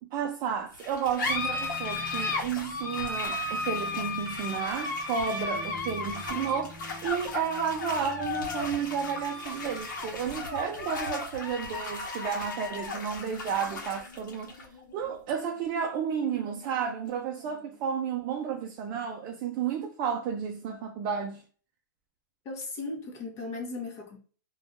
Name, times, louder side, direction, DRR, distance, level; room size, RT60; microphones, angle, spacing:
voice 1, 0.0-14.5 14.9-21.4, right 7 dB, 35° right, 0.4 m, -32 dB
sound 1, 0.7-17.7, left 3 dB, 70° left, 0.8 m, -35 dB
sound 2, 1.2-11.9, equal, 10° right, 1.1 m, -48 dB
voice 2, 22.4-24.2, left 3 dB, 30° left, 0.9 m, -37 dB
3.5 x 2.3 x 2.5 m
hypercardioid pair, 140°, 11 cm